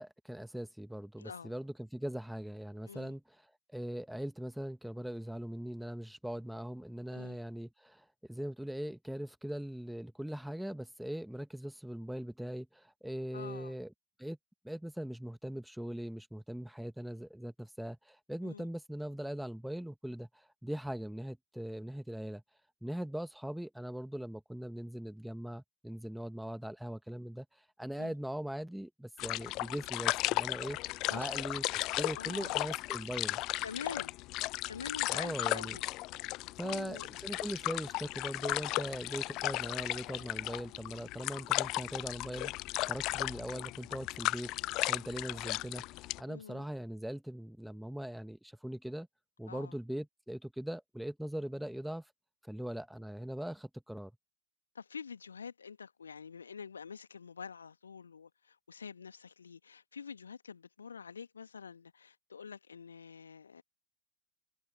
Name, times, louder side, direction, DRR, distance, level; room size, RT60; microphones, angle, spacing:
voice 1, 0.0-3.2 3.7-13.9 14.2-14.4 14.6-22.4 22.8-30.8 31.1-31.6 32.0-33.4 35.1-35.8 36.6-42.5 42.8-44.5 44.9-49.1 49.4-52.0 52.4-54.1, right 1 dB, ahead, 1.9 m, -40 dB
voice 2, 1.2-1.5 2.9-3.1 7.1-7.4 13.3-13.7 18.4-18.7 28.0-28.1 31.1-31.3 32.1-32.5 33.6-34.2 34.7-35.9 36.6-37.1 46.3-46.7 49.5-49.8 54.7-63.6, left 6 dB, 70° left, 2.1 m, -46 dB
sound 1, 29.2-46.2, left 19 dB, 40° left, 0.7 m, -36 dB
figure-of-eight pair, 90°, 0 cm